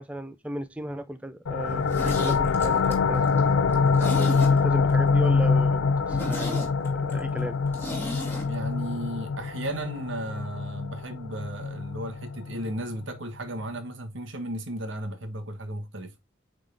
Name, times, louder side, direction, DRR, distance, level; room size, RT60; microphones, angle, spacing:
voice 1, 0.0-7.6, equal, 5° right, 0.4 m, -36 dB
sound 1, 1.5-12.8, left 4 dB, 80° left, 0.5 m, -25 dB
Zipper (clothing), 1.7-4.9 5.2-5.3 5.7-5.8 6.1-8.5 8.7-8.8, left 1 dB, 10° left, 2.4 m, -36 dB
voice 2, 8.5-16.1, right 1 dB, 65° right, 1.3 m, -35 dB
8.8 x 3.8 x 3.3 m
head